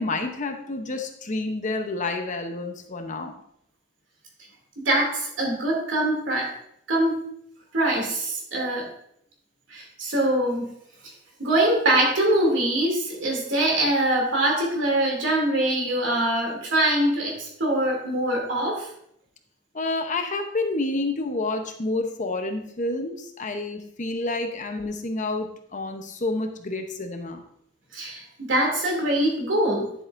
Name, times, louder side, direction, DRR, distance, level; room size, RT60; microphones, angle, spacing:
voice 1, 0.0-3.3 19.7-27.4, left 2 dB, 40° left, 6 dB, 0.8 m, -29 dB
voice 2, 4.8-6.5 6.9-7.2 7.7-8.9 9.7-10.7 11.4-18.9 27.9-29.9, right 1 dB, 70° right, 0 dB, 2.7 m, -23 dB
10.0 x 7.5 x 2.6 m, 0.71 s
head